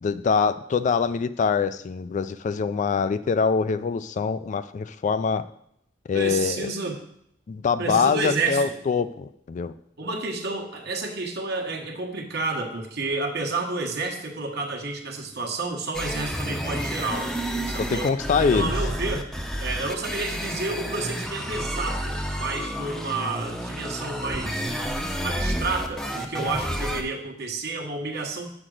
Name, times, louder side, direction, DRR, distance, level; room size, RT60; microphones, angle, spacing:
voice 1, 0.0-5.5 6.1-6.7 7.5-9.7 17.8-18.7, left 5 dB, 40° left, 13 dB, 0.3 m, -24 dB
voice 2, 6.1-7.0 7.8-8.8 10.0-17.3 17.6-18.1 18.4-19.2 19.6-24.7 25.2-28.5, right 3 dB, 60° right, 1 dB, 1.2 m, -30 dB
sound 1, 15.9-27.0, equal, ahead, 0.6 m, -30 dB
5.9 x 5.0 x 6.4 m, 0.73 s
head